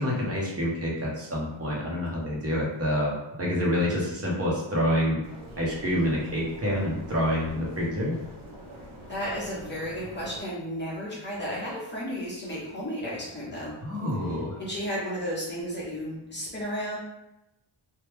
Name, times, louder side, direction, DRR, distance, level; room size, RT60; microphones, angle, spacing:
voice 1, 0.0-5.2 5.6-8.2 13.8-14.6, equal, 30° right, -4 dB, 0.9 m, -27 dB
sound 1, 5.2-10.5, equal, 80° right, 1.0 m, -45 dB
voice 2, 9.1-13.8 14.2-17.0, equal, 20° left, -8 dB, 1.0 m, -33 dB
3.0 x 2.3 x 3.4 m, 0.91 s
wide cardioid pair, 145°, 48 cm